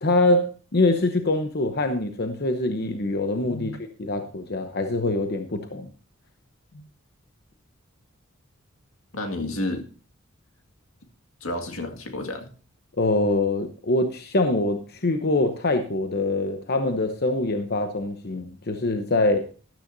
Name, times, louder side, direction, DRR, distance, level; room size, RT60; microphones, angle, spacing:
voice 1, 0.0-3.7 4.0-5.9 13.0-19.4, left 2 dB, 50° left, 6 dB, 0.9 m, -24 dB
voice 2, 3.5-3.8 6.7-6.8 9.1-9.9 11.4-12.5, left 1 dB, 80° left, 4 dB, 2.1 m, -31 dB
13.5 x 12.0 x 2.7 m, 0.38 s
head